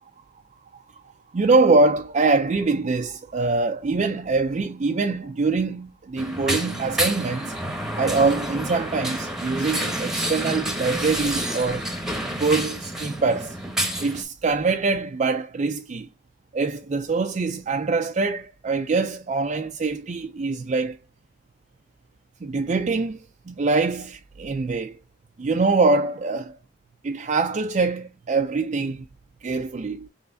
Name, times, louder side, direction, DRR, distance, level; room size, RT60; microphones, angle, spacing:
voice 1, 1.3-7.5 8.0-11.9 12.4-13.6 14.0-16.1 16.5-21.0 22.4-25.0 25.4-26.6 27.0-29.0 29.4-30.1, right 3 dB, 35° right, 0.4 m, -24 dB
sound 1, 6.2-14.2, right 1 dB, ahead, 0.9 m, -29 dB
5.5 x 3.1 x 2.6 m
head